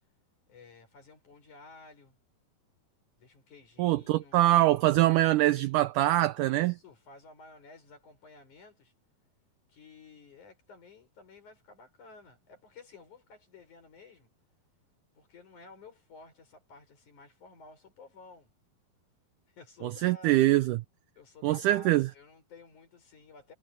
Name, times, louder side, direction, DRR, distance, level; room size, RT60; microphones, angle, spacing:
voice 1, 0.5-2.2 3.2-4.4 5.0-5.2 6.3-8.9 9.7-14.3 15.2-18.5 19.5-20.4 21.2-23.5, left 3 dB, 55° left, 7.4 m, -53 dB
voice 2, 3.8-6.7 19.8-20.8 21.4-22.1, right 15 dB, 85° right, 1.8 m, -24 dB
omnidirectional pair, 4.3 m